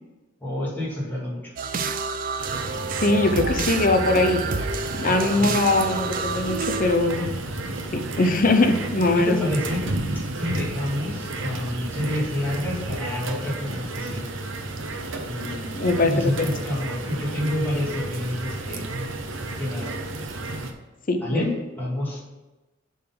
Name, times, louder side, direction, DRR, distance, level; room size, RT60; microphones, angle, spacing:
voice 1, 0.4-1.4 5.0-5.5 9.2-9.8 10.3-14.3 15.2-15.7 16.0-18.8 19.6-19.9 21.2-21.5 21.8-22.3, left 1 dB, 10° left, -6 dB, 2.4 m, -28 dB
sound 1, 1.6-7.0, right 4 dB, 45° right, 0.5 m, -29 dB
rain frogs predawn, 2.4-20.7, right 2 dB, 75° right, 0.8 m, -32 dB
voice 2, 3.0-4.4 5.0-7.3 7.9-9.5 15.7-16.5 21.1-21.5, left 2 dB, 45° left, 6 dB, 0.7 m, -21 dB
7.3 x 4.0 x 5.8 m, 1.1 s
head